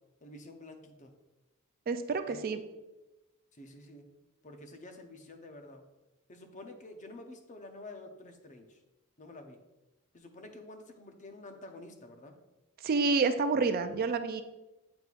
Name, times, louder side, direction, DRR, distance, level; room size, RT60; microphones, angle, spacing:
voice 1, 0.2-1.1 2.3-2.4 3.6-4.1 4.4-5.8 6.3-8.8 9.2-9.6 10.1-12.3, left 2 dB, 35° left, 6 dB, 0.7 m, -49 dB
voice 2, 1.9-2.6 12.8-14.4, right 4 dB, 45° right, 9 dB, 0.4 m, -28 dB
7.8 x 5.3 x 2.4 m, 1.0 s
head